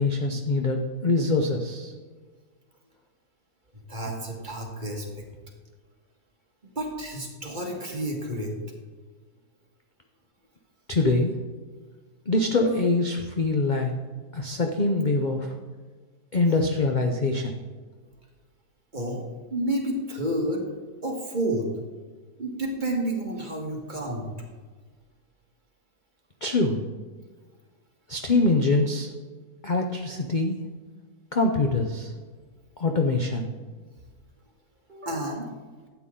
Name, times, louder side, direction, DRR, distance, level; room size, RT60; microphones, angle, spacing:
voice 1, 0.0-1.9 10.9-11.3 12.3-13.9 14.3-15.5 16.3-17.5 26.4-26.8 28.1-29.1 29.6-30.6 31.3-32.1 32.8-33.5, left 2 dB, 45° left, 3 dB, 0.6 m, -24 dB
voice 2, 3.9-5.2 6.8-8.6 12.5-12.7 18.9-19.2 19.5-20.7 21.0-21.7 22.4-24.3 34.9-35.5, right 1 dB, 30° right, 0 dB, 1.6 m, -30 dB
12.5 x 8.4 x 3.8 m, 1.4 s
omnidirectional pair, 1.7 m